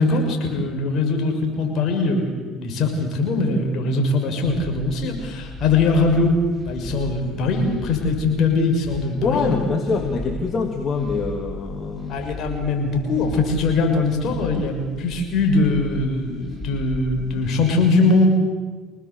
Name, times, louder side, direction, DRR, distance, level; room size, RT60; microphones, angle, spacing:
voice 1, 0.0-9.5 12.1-18.3, left 3 dB, 60° left, 3 dB, 6.4 m, -21 dB
sound 1, 4.4-17.5, equal, 5° left, 7.8 m, -36 dB
voice 2, 9.2-12.3, left 4 dB, 45° left, 3 dB, 3.1 m, -24 dB
26.5 x 19.0 x 8.5 m, 1.4 s
supercardioid pair, 75°, 0 cm